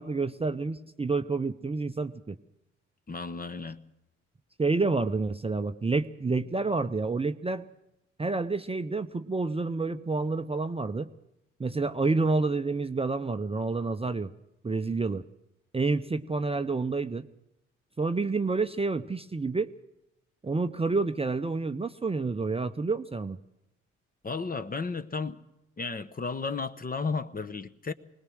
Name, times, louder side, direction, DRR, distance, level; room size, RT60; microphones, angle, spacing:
voice 1, 0.0-2.4 4.6-7.6 8.2-11.1 11.6-14.3 14.6-15.3 15.7-17.3 18.0-19.7 20.4-23.4, right 3 dB, 15° right, 0.7 m, -29 dB
voice 2, 3.1-3.8 24.2-25.4 25.8-27.9, left 4 dB, 25° left, 0.9 m, -33 dB
21.0 x 19.0 x 6.4 m
hypercardioid pair, 45°, 35 cm